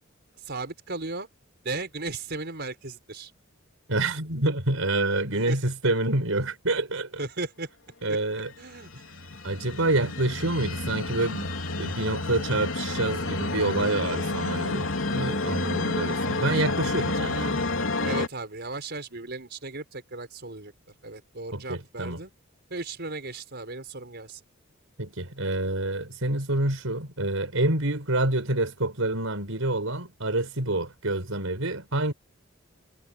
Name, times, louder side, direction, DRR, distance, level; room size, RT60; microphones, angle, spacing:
voice 1, 0.3-1.3 1.6-3.3 5.3-5.6 7.2-7.7 8.1-8.2 8.6-9.0 18.0-20.7 21.0-22.3 22.7-24.4, right 3 dB, 55° right, 5.2 m, -36 dB
voice 2, 3.9-7.2 8.0-8.5 9.4-11.5 11.8-17.6 21.5-22.2 25.0-32.1, right 2 dB, 85° right, 4.8 m, -27 dB
sound 1, 8.6-18.3, left 2 dB, 75° left, 3.7 m, -30 dB
head